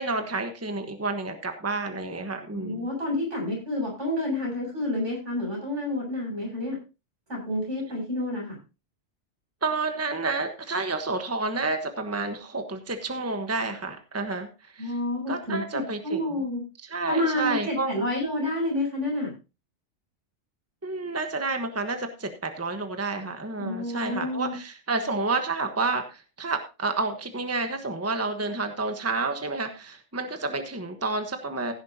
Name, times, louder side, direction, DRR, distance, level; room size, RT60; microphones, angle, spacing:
voice 1, 0.0-2.9 9.6-14.9 15.3-16.2 16.8-18.0 20.8-31.7, right 3 dB, 15° right, 7 dB, 1.2 m, -30 dB
voice 2, 2.5-6.8 7.3-8.6 14.8-16.6 17.1-19.3 23.6-24.5, left 1 dB, 80° right, -2 dB, 7.9 m, -29 dB
16.0 x 10.5 x 2.9 m, 0.29 s
omnidirectional pair, 1.2 m